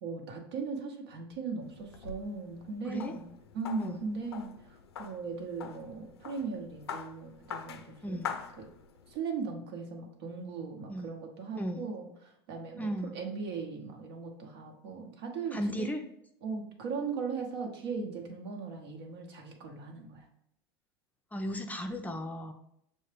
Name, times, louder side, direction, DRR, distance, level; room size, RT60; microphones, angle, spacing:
voice 1, 0.0-3.3 3.5-8.7 9.1-15.9 16.4-20.2, right 4 dB, 70° right, 2 dB, 0.9 m, -38 dB
sound 1, 1.6-9.2, left 7 dB, 90° left, 0.4 m, -44 dB
voice 2, 8.0-8.3 10.9-11.1 11.5-11.9 12.8-13.1 15.5-16.0 21.3-22.5, equal, 10° left, 4 dB, 0.4 m, -35 dB
6.4 x 2.1 x 3.3 m, 0.74 s
hypercardioid pair, 90°, 13 cm